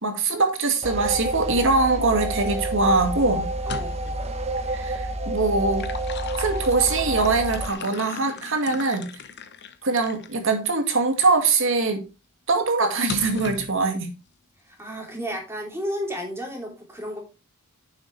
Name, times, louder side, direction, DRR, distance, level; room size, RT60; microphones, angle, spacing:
voice 1, 0.0-3.5 4.7-5.9 6.4-9.1 9.8-12.0 12.5-14.1, right 3 dB, 60° right, 2.1 m, -22 dB
sound 1, 0.8-7.7, right 1 dB, 30° right, 1.1 m, -29 dB
sound 2, 3.6-4.2 5.5-10.3 11.0-11.1 13.1-13.7, left 5 dB, 50° left, 1.0 m, -37 dB
voice 2, 3.7-4.0 14.7-17.2, equal, 10° right, 3.3 m, -32 dB
9.6 x 7.3 x 3.3 m
head